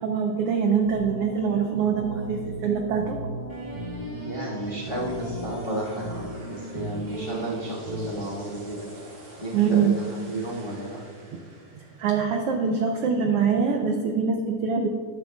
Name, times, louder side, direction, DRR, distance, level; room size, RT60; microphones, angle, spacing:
voice 1, 0.0-3.2 9.5-10.0 12.0-14.9, right 6 dB, 80° right, 3 dB, 1.3 m, -24 dB
sound 1, 0.8-8.1, right 1 dB, 60° right, 1.5 m, -36 dB
sound 2, 3.5-13.5, right 1 dB, 40° right, 2.5 m, -44 dB
voice 2, 4.2-8.9 9.4-11.0, right 1 dB, 25° left, -7 dB, 1.1 m, -32 dB
12.0 x 10.5 x 2.3 m, 2.1 s
omnidirectional pair, 3.4 m